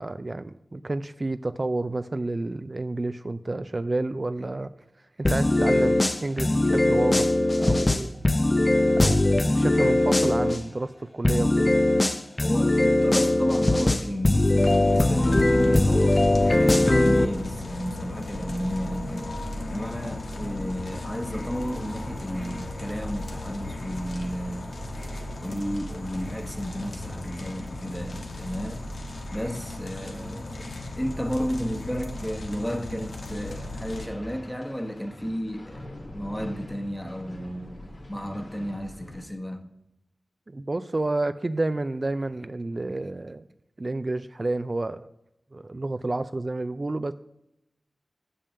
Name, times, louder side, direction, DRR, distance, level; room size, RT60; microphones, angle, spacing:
voice 1, 0.0-4.7 5.2-8.2 9.0-11.7 40.5-43.4 43.8-45.1 45.5-47.1, right 2 dB, 45° right, 0.3 m, -30 dB
sound 1, 5.3-10.6 11.3-17.3, left 1 dB, 30° left, 0.5 m, -21 dB
voice 2, 12.4-19.3 19.7-24.7 25.4-28.9 29.3-35.9 36.1-37.7 38.1-39.7, equal, 10° left, 1.1 m, -32 dB
sound 2, 14.6-34.1, left 1 dB, 80° left, 1.3 m, -36 dB
sound 3, 33.5-39.2, left 1 dB, 60° left, 1.7 m, -44 dB
7.4 x 6.8 x 6.7 m
cardioid pair, 45°, 0 cm